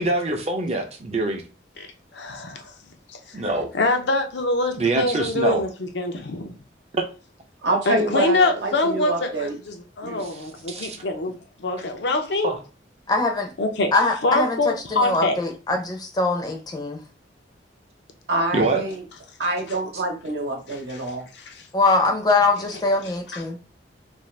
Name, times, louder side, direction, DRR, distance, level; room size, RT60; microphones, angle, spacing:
voice 1, 0.0-1.4 3.3-3.7 4.8-5.6 6.9-7.0 10.2-11.0 12.4-12.6 18.5-18.8, right 2 dB, 35° right, 0.5 m, -25 dB
voice 2, 2.1-2.7 3.1-3.4 3.7-6.5 7.9-12.5 13.6-13.9 14.2-15.4 21.5-21.6, left 2 dB, 70° left, 0.6 m, -24 dB
voice 3, 7.6-9.6 10.0-10.2 18.3-19.0 19.4-21.2, right 2 dB, 75° right, 0.9 m, -26 dB
voice 4, 13.1-13.5 13.9-17.0 21.7-23.7, left 3 dB, 20° left, 0.5 m, -22 dB
2.6 x 2.4 x 3.1 m
head